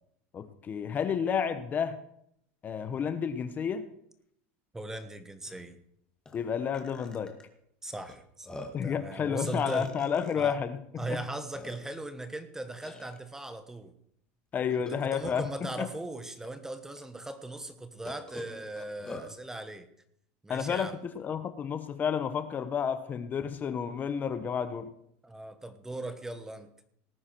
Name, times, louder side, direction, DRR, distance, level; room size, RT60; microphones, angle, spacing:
voice 1, 0.3-2.0 2.6-3.9 6.3-7.4 8.7-11.2 14.5-15.4 15.8-15.9 20.5-24.9, left 7 dB, 30° left, 11 dB, 1.0 m, -31 dB
voice 2, 4.7-5.8 7.8-9.9 10.4-10.6 11.0-13.9 14.9-19.9 20.4-20.9 25.2-26.7, right 2 dB, 5° right, 10 dB, 1.2 m, -39 dB
Burping eructation, 5.0-5.1 5.4-5.6 6.3-6.4 6.7-7.4 8.1-8.2 8.4-8.9 9.5-10.5 11.1-11.2 11.5-12.1 12.8-13.2 14.7-15.6 16.4-16.5 17.0-17.1 18.0-19.3, left 2 dB, 10° left, 2.0 m, -45 dB
18.5 x 9.5 x 4.6 m, 0.71 s
supercardioid pair, 140°, 6 cm